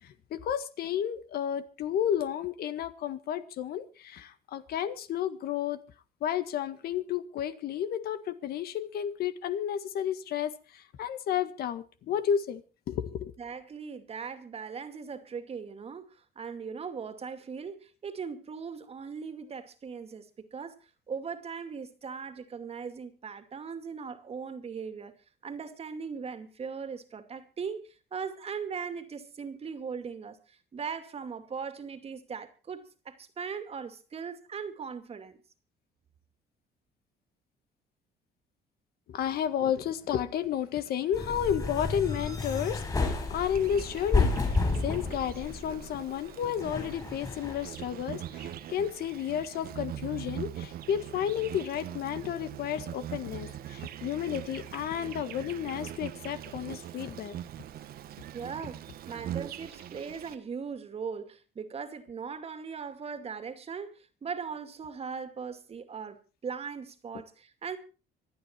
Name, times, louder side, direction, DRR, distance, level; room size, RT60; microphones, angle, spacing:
voice 1, 0.0-5.8 6.2-13.3 39.1-57.4, left 9 dB, 65° left, 1.6 m, -32 dB
voice 2, 13.4-20.8 21.1-25.1 25.4-27.8 28.1-35.4 58.3-67.8, right 6 dB, 35° right, 2.4 m, -39 dB
sound 1, 41.1-46.0 46.6-47.7, left 3 dB, 20° left, 4.9 m, -31 dB
Insect, 43.3-60.3, right 11 dB, 65° right, 1.2 m, -42 dB
26.0 x 9.0 x 4.5 m
cardioid pair, 110°, 17 cm